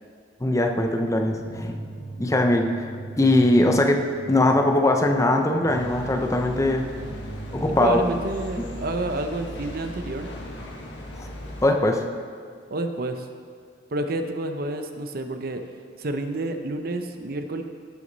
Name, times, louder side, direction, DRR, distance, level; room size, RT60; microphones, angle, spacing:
voice 1, 0.4-1.8 2.2-2.9 3.2-6.9 7.5-8.0 11.6-12.0, left 1 dB, 15° left, 4 dB, 0.6 m, -21 dB
sound 1, 1.2-8.8, right 2 dB, 35° left, 1.5 m, -40 dB
sound 2, 5.7-11.6, left 1 dB, 70° left, 1.4 m, -37 dB
voice 2, 7.8-10.3 12.7-13.3 13.9-15.6 16.0-17.6, right 2 dB, 50° right, 7 dB, 0.7 m, -29 dB
16.0 x 6.3 x 4.0 m, 2.1 s
head